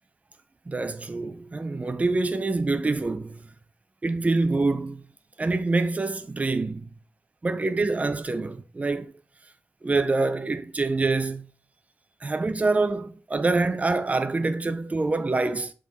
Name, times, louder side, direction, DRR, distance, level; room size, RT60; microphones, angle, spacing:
voice 1, 0.7-3.4 4.0-5.0 5.4-6.9 7.4-9.1 9.8-11.5 12.2-15.7, right 3 dB, 30° right, 0.6 m, -25 dB
7.1 x 3.7 x 4.1 m
wide cardioid pair, 100°, 5 cm